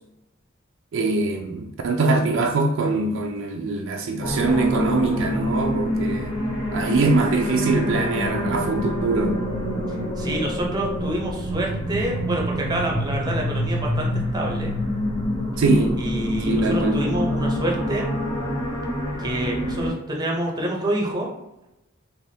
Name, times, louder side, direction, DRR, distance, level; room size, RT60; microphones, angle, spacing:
voice 1, 0.9-6.3 6.7-9.4 15.6-16.0 16.5-17.0, right 3 dB, 60° right, 3 dB, 0.4 m, -22 dB
sound 1, 4.2-19.9, equal, 20° left, 1.2 m, -26 dB
voice 2, 10.2-14.7 16.0-18.0 19.2-21.3, right 1 dB, 20° right, -1 dB, 0.6 m, -27 dB
3.4 x 3.0 x 2.7 m, 0.91 s
head